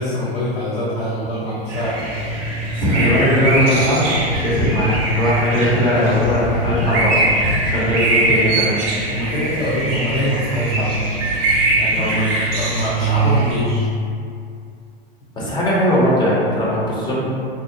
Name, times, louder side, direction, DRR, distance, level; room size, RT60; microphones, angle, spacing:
voice 1, 0.0-2.0 9.1-10.9 11.7-13.9, equal, 75° left, -8 dB, 0.7 m, -24 dB
sound 1, 1.7-13.5, right 2 dB, 40° right, 0.6 m, -21 dB
voice 2, 2.7-7.2 7.6-8.8 11.9-12.3 15.3-17.2, equal, 15° left, -7 dB, 0.5 m, -19 dB
2.7 x 2.0 x 2.6 m, 2.4 s
hypercardioid pair, 105°, 31 cm